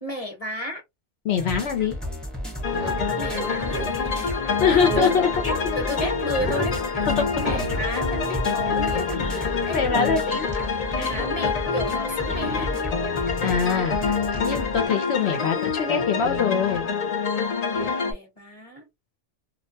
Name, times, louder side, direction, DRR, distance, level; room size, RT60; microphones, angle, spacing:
voice 1, 0.0-0.8 3.2-4.4 4.7-5.1 5.4-9.3 9.7-10.4 11.0-12.7 15.1-15.4 15.6-15.7 17.7-18.9, left 1 dB, 35° left, 1.0 m, -33 dB
voice 2, 1.2-2.0 4.6-5.3 9.1-9.5 9.7-10.5 11.0-11.2 13.4-16.9, left 6 dB, 70° left, 0.9 m, -24 dB
sound 1, 1.4-14.9, left 1 dB, ahead, 0.7 m, -33 dB
sound 2, 2.5-5.8 6.1-6.8 7.3-8.0 8.2-10.7 10.9-11.3 11.6-11.9 12.3-12.9 13.3-15.4 15.7-16.9 17.7-17.9, right 3 dB, 55° right, 0.8 m, -36 dB
sound 3, 2.6-18.1, left 5 dB, 55° left, 0.4 m, -27 dB
2.4 x 2.1 x 2.7 m
omnidirectional pair, 1.2 m